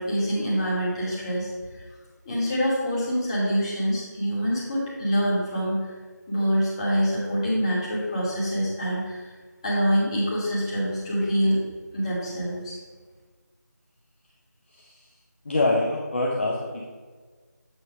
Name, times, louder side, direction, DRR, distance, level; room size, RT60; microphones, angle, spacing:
voice 1, 0.0-1.9 2.2-5.9 6.3-9.3 9.6-11.6 11.9-12.8, equal, 20° left, -7 dB, 1.5 m, -25 dB
voice 2, 14.7-15.0 15.4-16.8, left 2 dB, 40° left, -3 dB, 0.7 m, -25 dB
8.0 x 2.7 x 5.1 m, 1.5 s
figure-of-eight pair, 165°, 10 cm